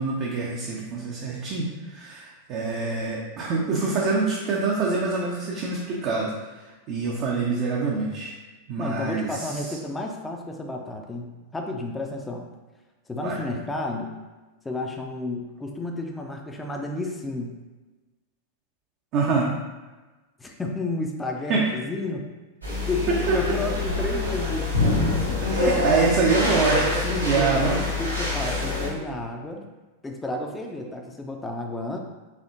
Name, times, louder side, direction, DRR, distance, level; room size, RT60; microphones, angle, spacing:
voice 1, 0.0-6.6 6.9-8.4 8.7-9.6 13.2-13.4 19.1-19.5 21.5-21.7 23.1-23.4 25.4-27.9, right 4 dB, 40° right, -3 dB, 0.5 m, -25 dB
voice 2, 8.8-12.5 13.1-14.2 14.6-17.5 20.4-22.3 22.9-24.7 28.0-29.7 30.0-32.0, left 2 dB, 10° left, 2 dB, 0.5 m, -31 dB
sound 1, 22.6-28.9, left 2 dB, 85° right, 1.0 m, -25 dB
4.2 x 2.8 x 2.6 m, 1.2 s
figure-of-eight pair, 90°, 0 cm